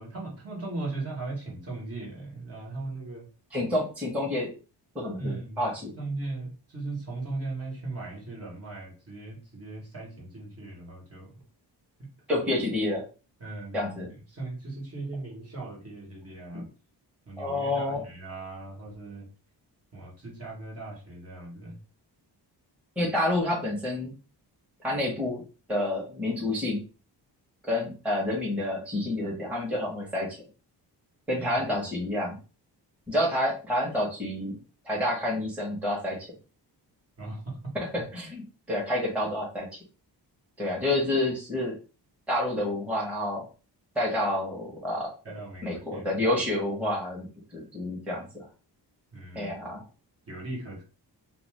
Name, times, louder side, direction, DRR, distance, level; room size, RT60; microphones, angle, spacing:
voice 1, 0.0-3.3 5.2-11.3 12.0-12.1 13.4-13.9 14.3-16.7 17.3-19.3 19.9-21.8 31.4-31.6 37.2-37.7 45.2-46.1 49.1-49.7 50.3-50.8, right 2 dB, 35° right, -2 dB, 1.1 m, -38 dB
voice 2, 3.5-4.5 4.9-5.9 12.3-13.0 13.7-14.1 16.5-16.6 17.4-18.0 23.0-24.1 24.8-25.4 25.7-26.8 27.6-30.3 31.3-32.4 33.1-34.5 34.8-36.2 37.9-38.4 38.7-39.7 40.6-41.7 42.3-43.4 43.9-45.1 45.6-47.3 47.5-48.4 49.3-49.8, left 1 dB, 5° right, -4 dB, 1.0 m, -28 dB
2.6 x 2.3 x 3.2 m, 0.34 s
wide cardioid pair, 115°, 43 cm